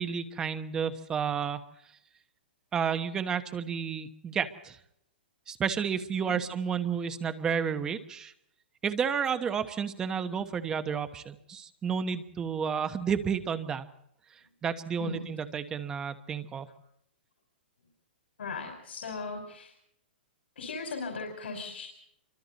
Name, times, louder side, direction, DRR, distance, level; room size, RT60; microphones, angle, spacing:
voice 1, 0.0-1.6 2.7-4.8 5.5-8.3 8.8-13.9 14.6-16.7, right 7 dB, 10° right, 10 dB, 1.1 m, -31 dB
voice 2, 18.4-19.7 20.6-21.9, left 4 dB, 90° left, 3 dB, 5.4 m, -38 dB
27.5 x 24.5 x 4.2 m, 0.73 s
hypercardioid pair, 170°, 6 cm